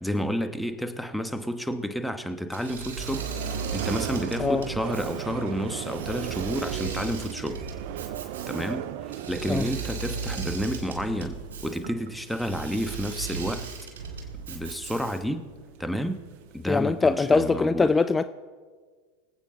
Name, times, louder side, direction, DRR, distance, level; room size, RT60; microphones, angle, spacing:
voice 1, 0.0-3.3 3.7-7.6 8.5-8.9 9.3-13.7 14.5-15.5 15.8-16.2 16.5-17.9, equal, ahead, 7 dB, 1.1 m, -30 dB
sound 1, 2.5-17.4, right 12 dB, 65° right, 0.6 m, -38 dB
Engine / Mechanisms, 2.5-15.4, right 5 dB, 80° right, 2.8 m, -37 dB
voice 2, 16.7-18.2, left 4 dB, 20° left, 12 dB, 0.4 m, -22 dB
24.5 x 8.2 x 3.9 m, 1.5 s
hypercardioid pair, 95°, 0 cm